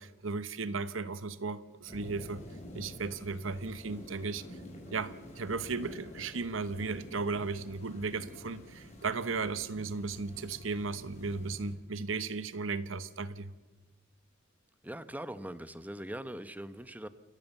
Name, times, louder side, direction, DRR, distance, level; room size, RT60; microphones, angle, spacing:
voice 1, 0.0-2.4 2.7-4.6 4.9-13.5, right 4 dB, 80° right, 14 dB, 1.0 m, -35 dB
sound 1, 1.9-11.7, left 1 dB, 35° left, 5.7 m, -49 dB
voice 2, 14.8-17.1, right 1 dB, 10° right, 13 dB, 0.9 m, -41 dB
29.5 x 14.5 x 7.2 m, 1.2 s
head